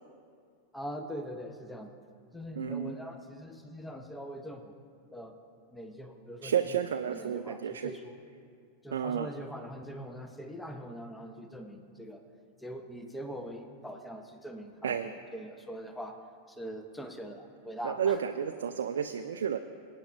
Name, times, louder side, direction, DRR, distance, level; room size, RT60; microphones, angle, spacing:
voice 1, 0.7-1.9 2.3-4.8 5.1-5.4 5.7-6.5 7.1-8.2 8.8-12.2 12.6-16.2 16.5-18.2, equal, 5° left, 6 dB, 0.9 m, -42 dB
voice 2, 2.6-2.9 6.4-7.9 8.9-9.3 14.8-15.1 17.8-19.6, right 8 dB, 65° right, 7 dB, 0.4 m, -31 dB
24.0 x 8.9 x 2.5 m, 2.2 s
figure-of-eight pair, 90°, 0 cm